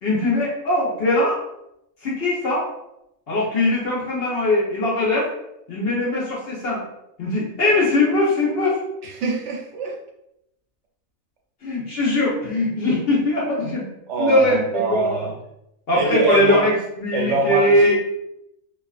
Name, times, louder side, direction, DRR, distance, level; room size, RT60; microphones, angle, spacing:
voice 1, 0.0-1.4 2.0-2.7 3.3-5.3 5.7-6.8 7.2-8.8 11.6-13.8 14.2-15.3 15.9-18.0, left 1 dB, 55° left, -5 dB, 0.8 m, -21 dB
voice 2, 9.0-10.0 14.1-15.3 15.9-16.7 17.1-18.0, right 3 dB, 65° right, -1 dB, 0.8 m, -23 dB
2.4 x 2.3 x 2.3 m, 0.82 s
omnidirectional pair, 1.4 m